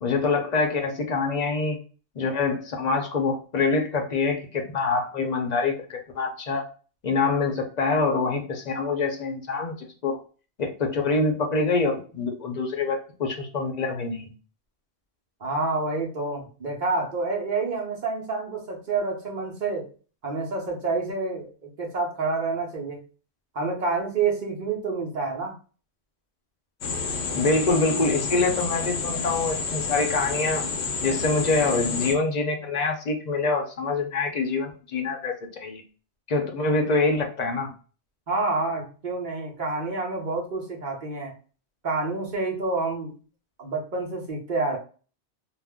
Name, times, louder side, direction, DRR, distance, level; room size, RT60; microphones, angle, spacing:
voice 1, 0.0-1.8 2.2-6.6 7.0-10.2 10.6-14.3 27.3-30.6 31.0-35.3 35.6-35.8 36.3-37.7, left 3 dB, 50° left, 3 dB, 0.6 m, -25 dB
voice 2, 15.4-19.9 20.2-23.0 23.5-25.5 38.3-41.3 41.8-43.2 43.6-44.8, right 3 dB, 50° right, -1 dB, 0.9 m, -28 dB
sound 1, 26.8-32.1, left 4 dB, 80° left, 0.9 m, -29 dB
2.5 x 2.0 x 3.4 m, 0.37 s
omnidirectional pair, 1.1 m